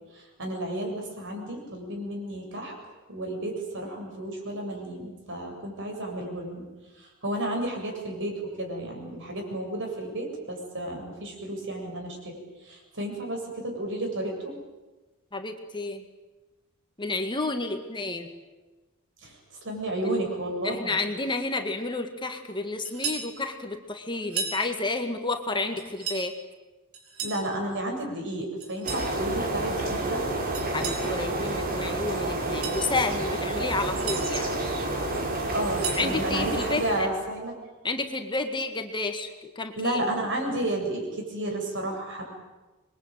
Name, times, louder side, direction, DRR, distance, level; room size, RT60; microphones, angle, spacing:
voice 1, 0.1-6.6 7.0-12.4 12.6-14.5 19.2-19.4 19.6-20.9 27.2-30.3 35.5-37.5 39.8-42.2, right 1 dB, 60° right, 2 dB, 7.9 m, -32 dB
voice 2, 15.3-16.0 17.0-18.3 20.6-26.3 30.7-34.7 36.0-37.1 37.8-40.0, left 3 dB, 20° left, 6 dB, 1.8 m, -30 dB
sound 1, 22.8-23.3 24.2-24.6 25.8-26.3 26.9-27.4 28.6-29.1 30.5-31.1 32.4-32.8 33.7-34.2 35.5-36.1, right 5 dB, 80° right, 5.5 m, -34 dB
sound 2, 28.8-37.1, right 2 dB, 45° right, 4.4 m, -29 dB
26.5 x 22.5 x 9.1 m, 1.2 s
head